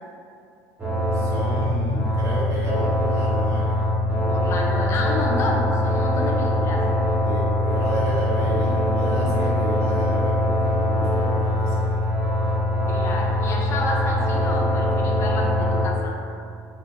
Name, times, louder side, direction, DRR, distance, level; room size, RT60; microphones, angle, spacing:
sound 1, 0.8-15.9, left 1 dB, 20° right, 1.4 m, -22 dB
voice 1, 1.1-3.8 6.5-6.6 7.2-12.0, right 1 dB, 40° right, -5 dB, 0.8 m, -32 dB
voice 2, 4.3-6.9 12.9-16.2, left 2 dB, 35° left, -1 dB, 0.5 m, -30 dB
2.8 x 2.3 x 3.8 m, 2.4 s
cardioid pair, 150°, 7 cm